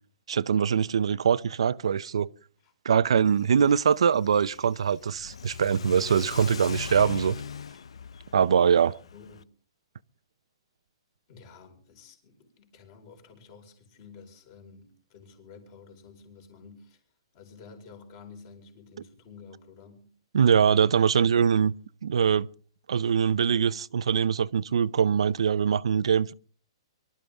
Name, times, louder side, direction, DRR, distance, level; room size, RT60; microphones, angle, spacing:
voice 1, 0.3-2.3 2.8-7.4 8.3-8.9 20.3-21.7 22.0-22.5 22.9-26.3, right 7 dB, 80° right, 0.6 m, -23 dB
Car / Accelerating revving vroom, 3.3-9.4, left 6 dB, 85° left, 0.6 m, -40 dB
voice 2, 9.1-9.5 11.3-17.0 17.3-20.1 20.6-20.8, left 5 dB, 30° left, 4.5 m, -51 dB
24.0 x 12.5 x 3.5 m
hypercardioid pair, 170°, 3 cm